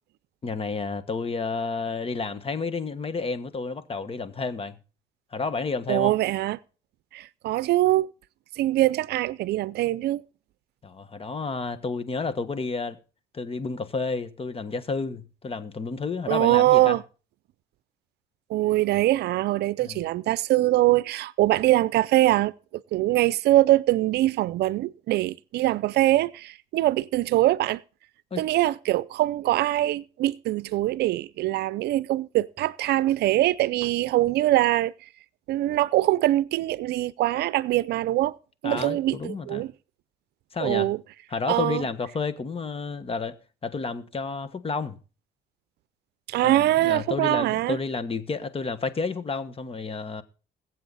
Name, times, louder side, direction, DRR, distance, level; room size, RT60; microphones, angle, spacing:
voice 1, 0.4-4.8 5.3-6.1 10.8-13.0 13.3-17.0 19.8-20.0 28.3-28.4 38.6-39.6 40.5-40.9 41.3-43.4 43.6-45.0 46.4-50.2, left 4 dB, 35° left, 1.5 m, -31 dB
voice 2, 5.9-6.6 7.1-8.1 8.6-10.2 16.3-17.0 18.5-27.8 28.4-34.9 35.5-38.4 38.6-39.7 40.6-41.0 41.5-41.8 46.3-47.8, right 16 dB, 75° right, 0.6 m, -23 dB
21.0 x 7.8 x 4.1 m
cardioid pair, 85°, 17 cm